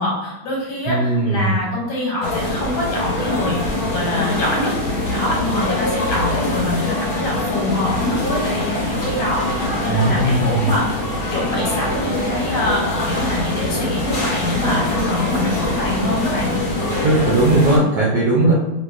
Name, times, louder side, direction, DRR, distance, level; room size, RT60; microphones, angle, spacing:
voice 1, 0.0-4.7 5.1-11.0 11.3-16.6, left 2 dB, 80° left, -4 dB, 1.5 m, -24 dB
voice 2, 0.9-1.5 9.9-10.7 17.0-18.5, right 2 dB, 75° right, -5 dB, 0.9 m, -17 dB
sound 1, 2.2-17.8, left 1 dB, 60° left, 1.0 m, -23 dB
2.8 x 2.8 x 2.3 m, 1.0 s
omnidirectional pair, 2.2 m